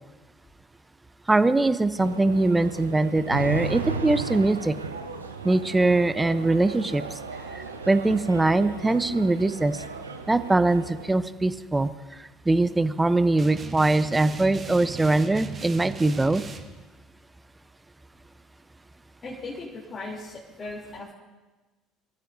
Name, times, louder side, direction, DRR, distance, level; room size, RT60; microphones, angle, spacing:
voice 1, 1.3-4.7 5.4-7.0 7.5-9.8 10.3-11.9 12.5-16.4, right 2 dB, 15° right, 13 dB, 0.7 m, -22 dB
sound 1, 2.0-11.1, right 4 dB, 85° right, 0.6 m, -36 dB
sound 2, 13.4-16.6, right 4 dB, 35° right, 1.5 m, -38 dB
voice 2, 19.2-21.1, left 2 dB, 35° left, -5 dB, 3.2 m, -38 dB
24.0 x 14.0 x 2.7 m, 1.2 s
figure-of-eight pair, 60°, 0 cm